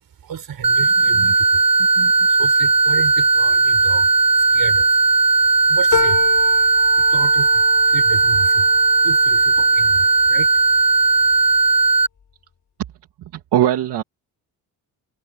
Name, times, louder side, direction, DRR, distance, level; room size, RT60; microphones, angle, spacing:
voice 1, 0.2-1.6 2.3-5.0 5.7-6.5 6.9-11.6, right 8 dB, 60° right, 6.8 m, -33 dB
sound 1, 0.6-12.1, right 3 dB, 15° right, 0.4 m, -16 dB
sound 2, 5.9-10.7 11.2-11.9 12.2-12.3, left 6 dB, 45° left, 7.4 m, -30 dB
voice 2, 13.2-14.0, right 12 dB, 75° right, 2.3 m, -21 dB
cardioid pair, 95°, 41 cm